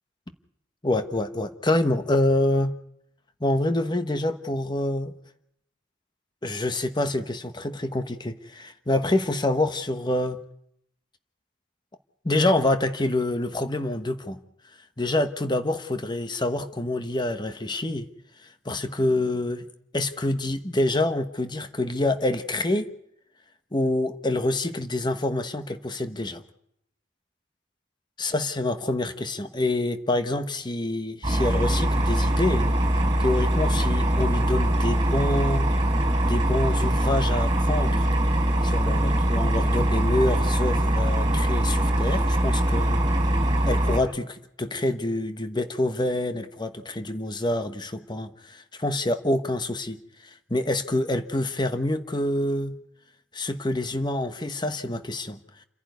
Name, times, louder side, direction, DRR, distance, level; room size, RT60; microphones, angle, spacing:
voice 1, 0.8-2.7 3.4-5.1 6.4-10.4 12.2-14.4 15.0-18.1 18.4-19.6 19.9-22.9 23.7-26.4 28.2-32.7 33.2-35.7 36.2-38.1 38.6-43.0 43.7-52.7 53.3-55.4, left 1 dB, 25° left, 9 dB, 1.1 m, -26 dB
sound 1, 31.2-44.0, right 1 dB, 25° right, 4.4 m, -22 dB
28.5 x 11.0 x 9.5 m, 0.77 s
head